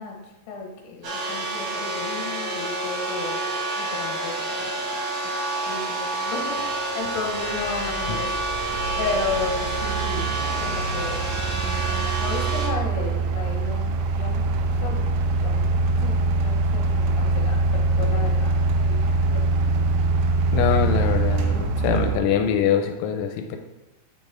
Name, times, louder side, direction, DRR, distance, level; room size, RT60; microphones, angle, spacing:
voice 1, 0.0-3.5 3.8-5.0 5.7-14.5 14.7-15.1 15.3-19.4, left 4 dB, 70° left, 1 dB, 2.9 m, -34 dB
sound 1, 1.0-12.7, right 2 dB, 70° right, 1.4 m, -28 dB
sound 2, 6.4-6.5 7.1-22.2, right 3 dB, 85° right, 3.0 m, -24 dB
voice 2, 20.5-23.6, left 8 dB, 85° left, 4 dB, 3.0 m, -23 dB
9.4 x 4.1 x 3.7 m, 1.0 s
omnidirectional pair, 5.4 m